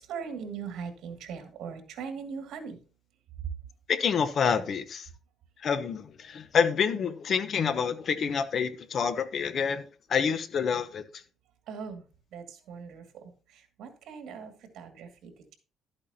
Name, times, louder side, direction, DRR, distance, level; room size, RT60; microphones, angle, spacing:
voice 1, 0.0-2.8 11.7-12.0 12.3-15.5, right 6 dB, 75° right, 2.3 m, -40 dB
voice 2, 3.9-5.1 5.6-9.8 10.1-11.0, left 6 dB, 50° left, 0.9 m, -27 dB
12.5 x 8.7 x 2.8 m
cardioid pair, 125°, 0 cm